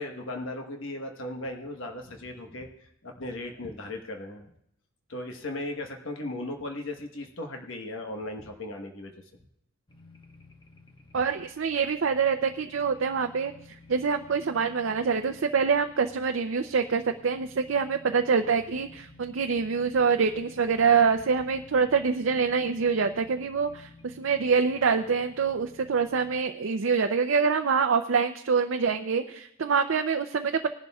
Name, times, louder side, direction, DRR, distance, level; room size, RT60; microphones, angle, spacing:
voice 1, 0.0-4.5 5.1-9.1, left 1 dB, 75° left, 3 dB, 1.2 m, -37 dB
sound 1, 9.9-26.4, left 3 dB, 25° left, 1.1 m, -53 dB
voice 2, 11.1-13.5 13.9-30.7, right 5 dB, 70° right, 6 dB, 0.5 m, -25 dB
20.0 x 11.0 x 2.3 m, 0.75 s
head